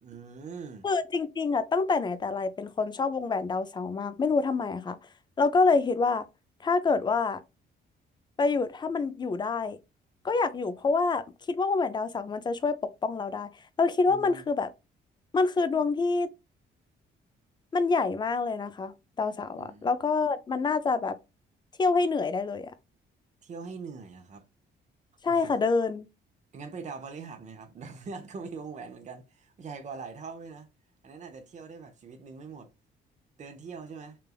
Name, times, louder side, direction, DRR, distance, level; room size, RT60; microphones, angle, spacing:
voice 1, 0.0-0.9 14.1-14.5 19.6-19.9 23.4-24.5 25.3-25.5 26.5-30.7 31.0-32.7 33.4-34.2, right 5 dB, 35° right, 0.6 m, -42 dB
voice 2, 0.8-5.0 5.4-6.2 6.6-7.4 8.4-9.8 10.2-13.5 13.8-14.7 15.3-16.3 17.7-18.9 19.2-21.2 21.8-22.7 25.2-26.0, left 4 dB, 25° left, 0.3 m, -26 dB
3.2 x 2.3 x 2.3 m
cardioid pair, 90°, 20 cm